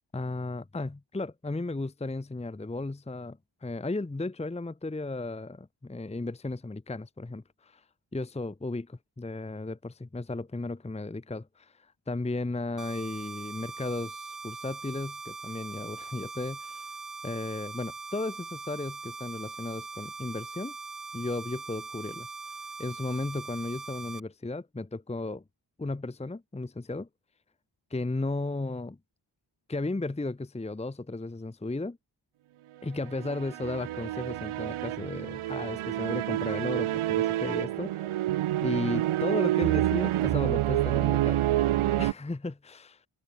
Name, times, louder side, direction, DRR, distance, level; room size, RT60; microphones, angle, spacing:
voice 1, 0.1-7.8 8.1-16.9 17.2-20.7 21.1-25.4 25.8-27.1 27.9-29.0 29.7-32.0 32.8-38.1 38.6-41.7 42.0-43.0, left 2 dB, 15° left, 0.9 m, -35 dB
sound 1, 12.8-24.2, right 4 dB, 40° right, 2.3 m, -41 dB
sound 2, 33.0-42.1, right 13 dB, 85° right, 0.6 m, -28 dB
open air
cardioid pair, 40°, 49 cm